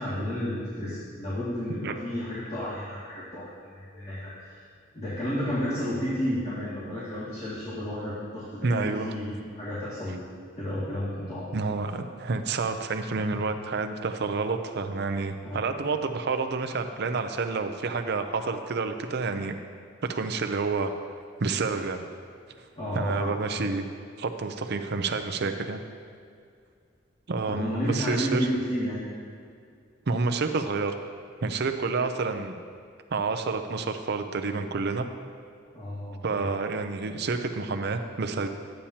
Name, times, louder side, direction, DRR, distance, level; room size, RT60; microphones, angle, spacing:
voice 1, 0.0-4.6 4.9-10.2 10.5-11.5 15.4-15.7 22.8-23.6 27.5-29.0 35.6-36.6, equal, 35° left, -12 dB, 2.1 m, -32 dB
voice 2, 8.6-9.1 11.5-19.5 20.0-20.9 21.4-22.1 22.9-23.8 24.2-25.8 27.3-28.5 30.1-30.9 31.4-32.5 33.1-35.1 36.2-38.5, right 4 dB, 60° right, 6 dB, 0.6 m, -29 dB
11.5 x 8.7 x 2.8 m, 2.2 s
head